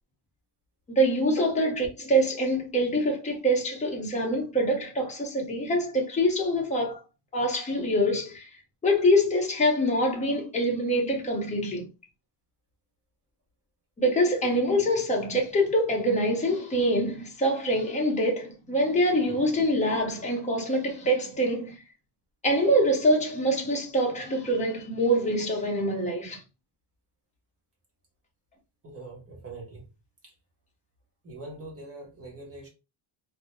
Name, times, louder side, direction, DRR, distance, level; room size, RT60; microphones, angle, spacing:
voice 1, 0.9-7.0 7.3-8.5 8.8-11.9 14.0-21.8 22.4-26.4, equal, 15° left, 0.7 m, -25 dB
voice 2, 28.8-29.8 30.2-30.3 31.2-32.7, right 2 dB, 30° right, 0.8 m, -43 dB
2.3 x 2.0 x 2.9 m
cardioid pair, 145°, 48 cm